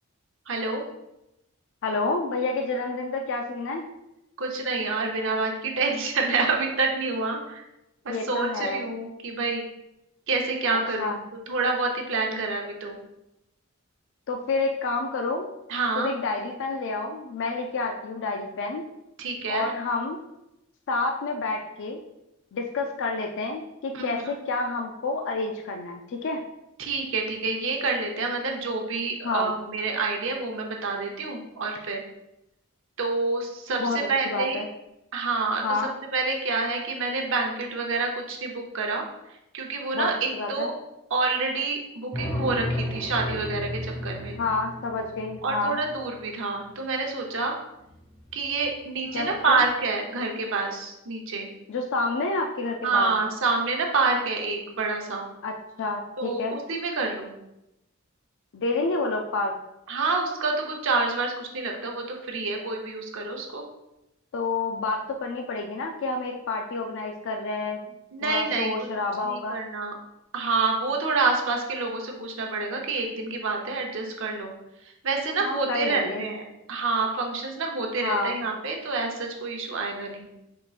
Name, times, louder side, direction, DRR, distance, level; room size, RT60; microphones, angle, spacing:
voice 1, 0.5-0.8 4.4-7.6 8.0-9.6 10.3-11.2 11.5-13.0 15.7-16.1 19.2-19.7 23.9-24.3 26.8-32.0 33.0-34.6 35.1-35.6 36.1-39.1 39.5-40.7 41.1-44.4 45.4-47.6 48.3-51.5 52.8-55.3 56.2-57.3 59.9-63.6 68.1-68.7 69.2-69.9 70.3-74.5 75.0-76.4 76.7-80.3, right 3 dB, 65° right, 1 dB, 0.8 m, -27 dB
voice 2, 1.8-3.9 8.1-8.8 11.0-11.2 14.3-15.5 16.0-18.8 19.5-20.2 20.9-22.0 22.5-26.4 29.2-29.5 33.8-34.7 35.6-35.9 39.9-40.7 44.4-45.8 49.1-49.6 51.7-53.1 55.4-56.6 58.5-59.6 64.3-67.8 68.2-69.6 75.4-76.3 78.0-78.4, left 3 dB, 60° left, 3 dB, 0.4 m, -29 dB
sound 1, 42.1-46.0 47.9-48.3 48.7-48.8 49.1-49.7, left 1 dB, 25° left, 0.9 m, -34 dB
5.0 x 3.7 x 2.4 m, 0.89 s
head